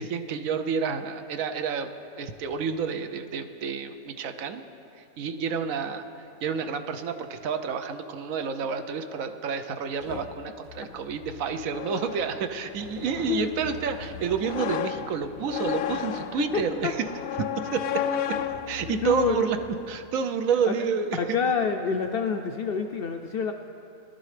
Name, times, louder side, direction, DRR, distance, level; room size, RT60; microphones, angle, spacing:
voice 1, 0.0-1.9 2.2-4.6 5.2-6.1 6.4-17.1 17.4-18.0 18.3-18.4 18.7-19.6 19.9-21.4, right 6 dB, 80° right, 8 dB, 1.1 m, -29 dB
sound 1, 10.0-20.0, left 9 dB, 85° left, 1.0 m, -34 dB
voice 2, 16.3-16.9 18.9-19.4 20.7-20.8 21.1-23.5, left 6 dB, 65° left, 5 dB, 0.6 m, -27 dB
19.0 x 12.0 x 3.3 m, 2.8 s
omnidirectional pair, 1.4 m